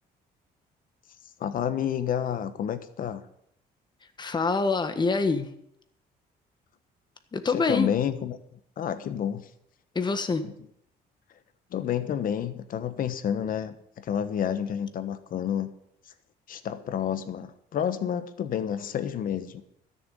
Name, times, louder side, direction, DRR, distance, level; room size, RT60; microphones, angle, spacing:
voice 1, 1.4-3.2 7.5-8.4 8.8-9.4 10.4-10.5 11.7-15.7 16.5-19.6, left 9 dB, 55° left, 11 dB, 1.3 m, -29 dB
voice 2, 4.2-5.5 7.3-7.9 9.9-10.5, left 4 dB, 25° left, 8 dB, 1.5 m, -25 dB
13.0 x 7.1 x 8.7 m, 0.73 s
cardioid pair, 110°, 17 cm